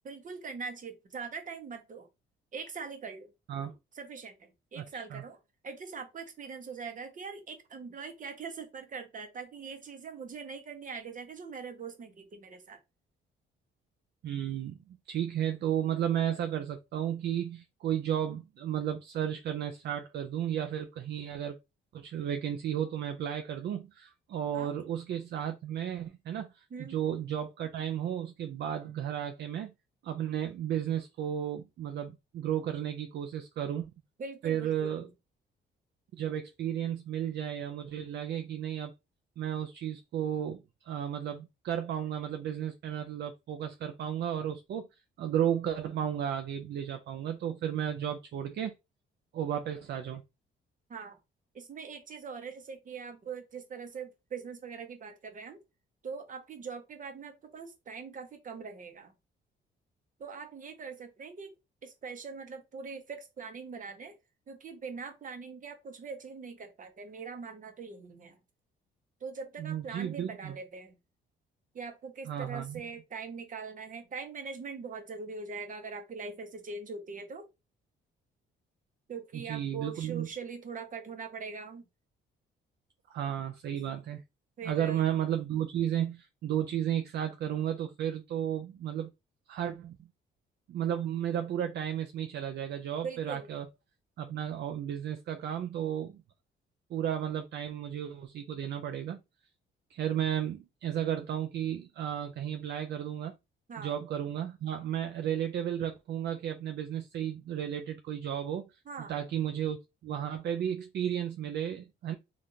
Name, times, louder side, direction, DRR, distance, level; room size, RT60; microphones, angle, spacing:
voice 1, 0.0-2.1 2.5-3.3 3.9-5.4 5.6-12.8 24.5-24.8 26.7-27.0 34.2-35.1 50.9-51.2 51.5-55.6 56.0-59.1 60.2-61.5 61.8-64.1 64.5-68.4 69.2-71.0 71.7-77.5 79.1-81.9 84.6-85.1 93.0-93.5 103.7-103.9 108.9-109.2, right 5 dB, 40° right, 0.9 m, -42 dB
voice 2, 4.8-5.2 14.2-21.6 21.9-29.7 30.0-33.9 34.4-35.1 36.1-38.9 39.4-44.9 45.2-48.7 49.3-50.2 69.6-70.6 72.3-72.8 79.3-80.3 83.1-84.2 84.6-89.1 89.5-90.0 90.7-93.7 94.2-96.2 96.9-99.2 99.9-103.4 103.8-109.8 110.0-112.1, right 10 dB, 60° right, 0.4 m, -33 dB
3.4 x 2.5 x 2.7 m
cardioid pair, 90°, 20 cm